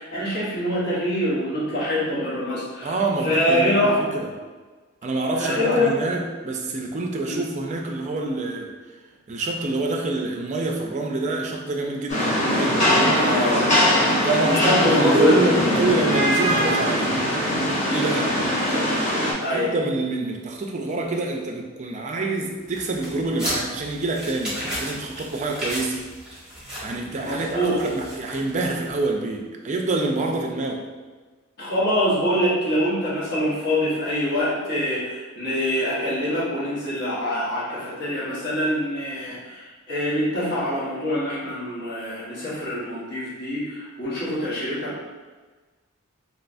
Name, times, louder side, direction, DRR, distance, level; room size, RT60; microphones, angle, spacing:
voice 1, 0.0-4.0 5.4-5.9 7.2-7.4 13.2-13.7 14.4-15.6 18.7-18.8 19.4-19.7 27.2-27.8 31.6-45.0, left 1 dB, 55° left, -8 dB, 1.2 m, -24 dB
voice 2, 2.8-4.3 5.0-8.7 9.3-13.3 14.2-17.2 17.9-18.3 19.5-26.0 26.8-30.8, right 2 dB, 35° right, 1 dB, 0.4 m, -26 dB
Rain, 12.1-19.3, equal, 35° left, 1.0 m, -21 dB
sound 1, 22.7-28.9, equal, 5° right, 1.2 m, -34 dB
3.1 x 2.9 x 2.5 m, 1.3 s
head